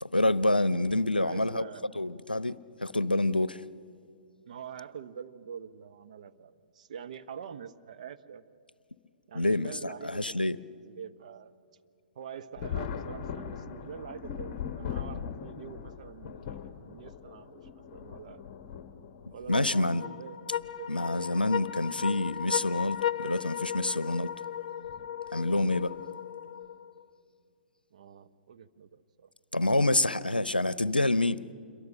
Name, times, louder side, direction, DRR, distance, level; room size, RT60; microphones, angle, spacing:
voice 1, 0.0-1.6 2.0-3.6 9.3-10.6 19.5-20.0 20.9-24.3 25.3-25.9 29.5-31.5, left 2 dB, 85° left, 0.7 m, -27 dB
voice 2, 1.2-1.8 4.4-8.4 9.3-10.5 10.8-11.5 12.1-18.4 19.3-21.0 27.9-29.3, right 7 dB, 50° right, 0.9 m, -45 dB
Thunder, 12.6-19.6 20.6-20.7 22.2-22.4 22.8-22.9 24.9-25.1 25.8-26.1, left 7 dB, 30° left, 1.4 m, -40 dB
sound 1, 19.5-27.1, left 9 dB, 45° left, 0.6 m, -36 dB
27.5 x 23.0 x 6.5 m
figure-of-eight pair, 120°, 5 cm